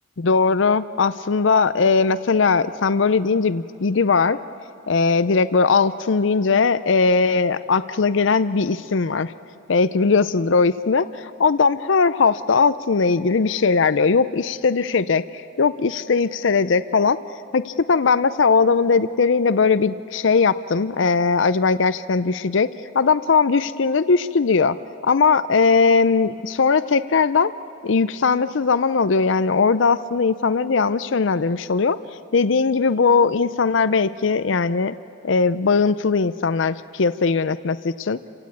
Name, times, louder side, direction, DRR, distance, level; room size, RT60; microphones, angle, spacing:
voice 1, 0.2-4.4 4.9-9.3 9.7-15.2 15.6-17.2 17.5-24.8 25.0-27.5 27.8-32.0 32.3-35.0 35.2-38.2, left 4 dB, 65° left, 14 dB, 0.6 m, -19 dB
29.5 x 17.0 x 8.6 m, 2.6 s
head